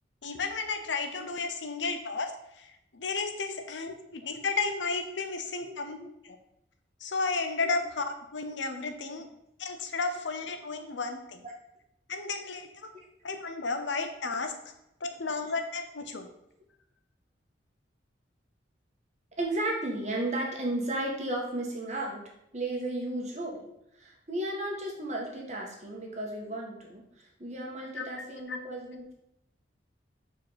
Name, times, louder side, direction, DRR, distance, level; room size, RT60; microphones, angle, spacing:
voice 1, 0.2-2.3 2.6-2.7 2.9-6.0 6.2-6.4 7.0-9.3 9.6-11.5 12.1-12.7 13.2-14.5 15.0-16.3 28.0-28.6, left 4 dB, 75° left, 7 dB, 0.9 m, -33 dB
voice 2, 5.6-6.1 7.6-7.8 11.4-11.5 12.9-13.1 19.4-22.2 22.5-23.6 23.9-29.1, right 1 dB, 35° right, 0 dB, 1.6 m, -34 dB
6.9 x 4.8 x 5.2 m, 0.80 s
head